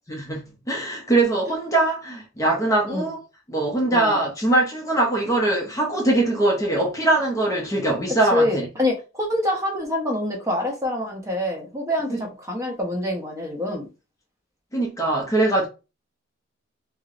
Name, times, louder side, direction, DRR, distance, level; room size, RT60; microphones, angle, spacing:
voice 1, 0.1-3.2 3.5-8.7 12.1-12.2 14.7-15.7, right 2 dB, 15° left, 0.6 m, -22 dB
voice 2, 3.9-4.2 8.3-13.9, left 1 dB, 15° right, 0.8 m, -26 dB
4.3 x 2.1 x 2.5 m
head